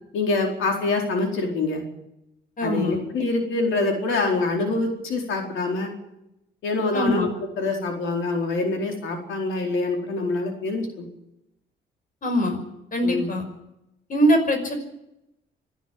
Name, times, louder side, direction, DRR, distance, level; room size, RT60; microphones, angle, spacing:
voice 1, 0.1-1.8 2.6-5.9 6.6-7.3 7.6-11.1 13.0-13.3, left 3 dB, 80° left, 2 dB, 4.5 m, -25 dB
voice 2, 2.6-3.0 6.9-7.3 12.2-12.6 12.9-13.5 14.1-14.8, equal, 45° left, 5 dB, 5.6 m, -22 dB
26.5 x 10.5 x 9.6 m, 0.87 s
cardioid pair, 90°, 20 cm